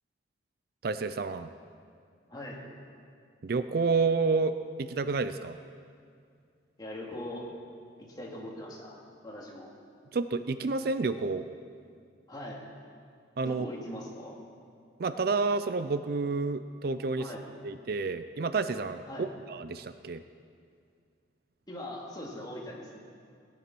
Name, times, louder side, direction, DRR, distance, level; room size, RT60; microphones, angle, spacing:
voice 1, 0.8-1.5 3.4-5.6 10.1-11.5 13.4-13.7 15.0-17.3 17.6-20.2, right 4 dB, 55° right, 11 dB, 0.4 m, -30 dB
voice 2, 2.3-2.6 6.8-7.5 8.1-9.7 12.3-12.6 13.5-14.4 17.2-17.4 19.1-19.3 21.7-23.0, left 1 dB, 20° left, -3 dB, 2.3 m, -41 dB
17.5 x 9.7 x 6.1 m, 2.3 s
head